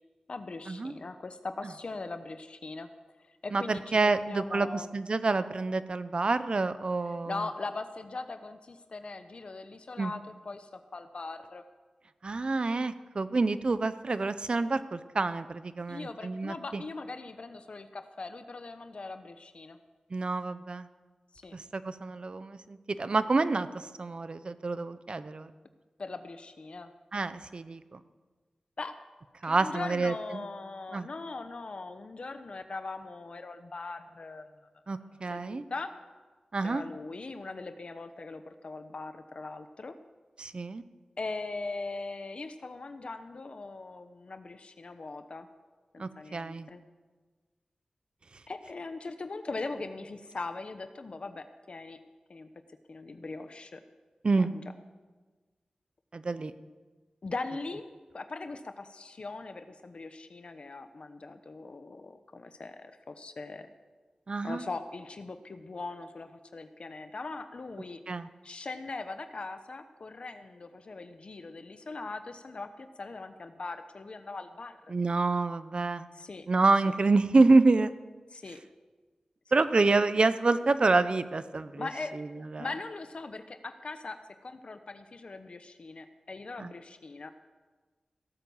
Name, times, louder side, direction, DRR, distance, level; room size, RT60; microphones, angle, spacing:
voice 1, 0.3-2.9 3.4-4.9 7.1-11.6 15.9-19.8 21.3-21.6 26.0-26.9 28.8-28.9 29.4-34.5 35.3-35.9 36.6-40.0 41.2-45.5 45.9-46.8 48.5-52.0 52.3-52.5 52.9-53.8 54.4-54.6 57.2-57.8 58.1-63.7 64.4-68.0 68.4-74.8 76.1-76.5 78.3-78.6 81.8-82.2 82.6-84.2 84.4-87.3, left 3 dB, 60° left, 9 dB, 0.9 m, -40 dB
voice 2, 3.5-7.5 10.0-10.1 12.2-16.8 20.1-20.9 21.5-25.5 27.1-28.0 29.4-30.4 30.9-31.1 34.9-35.6 36.5-36.8 40.4-40.8 46.0-46.7 54.2-54.5 56.1-56.5 64.3-64.6 68.1-68.3 74.9-76.1 76.5-77.9 79.5-81.9 82.1-82.7 86.6-86.7, right 3 dB, 50° right, 13 dB, 0.8 m, -27 dB
17.0 x 8.9 x 7.2 m, 1.3 s
wide cardioid pair, 80°, 2 cm